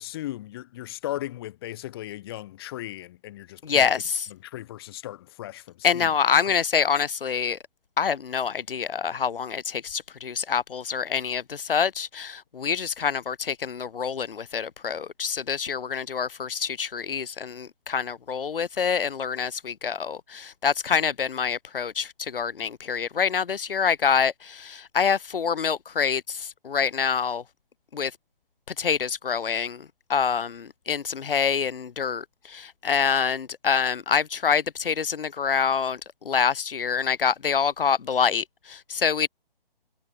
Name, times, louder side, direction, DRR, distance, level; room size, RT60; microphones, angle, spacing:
voice 1, 0.0-4.0 4.3-6.1, left 14 dB, 25° left, 4.8 m, -37 dB
voice 2, 3.6-4.2 5.8-7.6 8.0-27.4 27.9-28.1 28.8-39.3, left 6 dB, 65° left, 1.3 m, -26 dB
hypercardioid pair, 165°, 29 cm